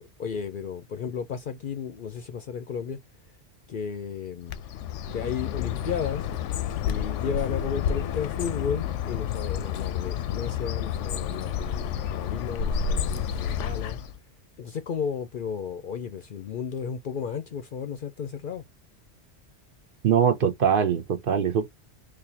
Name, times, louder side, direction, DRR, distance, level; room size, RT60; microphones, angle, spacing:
voice 1, 0.0-3.0 3.7-4.6 5.1-6.3 6.9-14.0 14.6-18.6, left 7 dB, 55° left, 0.6 m, -33 dB
Bird, 4.5-14.2, left 8 dB, 85° left, 0.9 m, -30 dB
voice 2, 20.0-21.7, right 8 dB, 55° right, 0.7 m, -22 dB
4.1 x 2.6 x 2.7 m
omnidirectional pair, 1.2 m